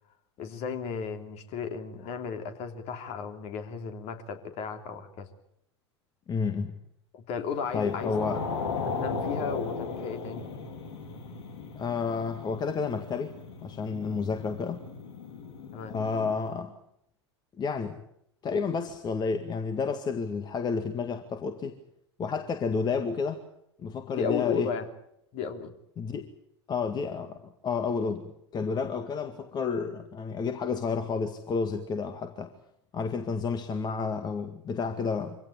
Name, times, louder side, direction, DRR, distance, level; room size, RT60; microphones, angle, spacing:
voice 1, 0.4-5.3 7.1-8.5 8.8-10.4 15.7-15.9 24.1-24.9 25.3-25.7, left 6 dB, 45° left, 7 dB, 3.2 m, -35 dB
voice 2, 6.3-6.7 7.7-8.4 11.8-13.3 13.6-14.8 15.9-16.7 17.6-18.0 18.4-21.8 22.2-23.4 23.8-24.7 26.0-26.3 26.7-32.5 32.9-35.4, left 5 dB, 30° left, 8 dB, 1.9 m, -30 dB
sound 1, 7.6-16.4, left 4 dB, 70° left, 4.5 m, -37 dB
24.5 x 16.5 x 9.8 m, 0.76 s
hypercardioid pair, 90°, 15 cm